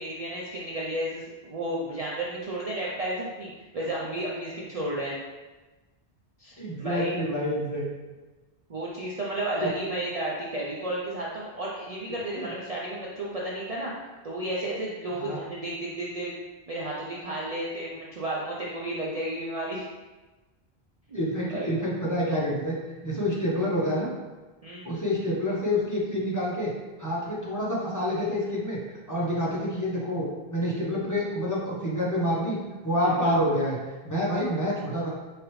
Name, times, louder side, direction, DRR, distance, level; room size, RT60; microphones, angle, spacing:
voice 1, 0.0-5.2 6.4-7.2 8.7-13.9 14.2-16.3 16.7-19.9 21.1-21.2 21.5-21.7 24.6-24.8 33.0-33.3, right 1 dB, 45° right, -5 dB, 0.6 m, -32 dB
voice 2, 6.6-8.1 9.6-9.7 12.3-12.5 15.1-15.4 21.1-22.7 23.0-24.1 24.8-26.7 27.0-28.8 29.1-32.6 32.8-33.8 34.0-35.1, equal, 20° left, -7 dB, 0.9 m, -27 dB
4.8 x 3.2 x 3.1 m, 1.2 s
omnidirectional pair, 1.1 m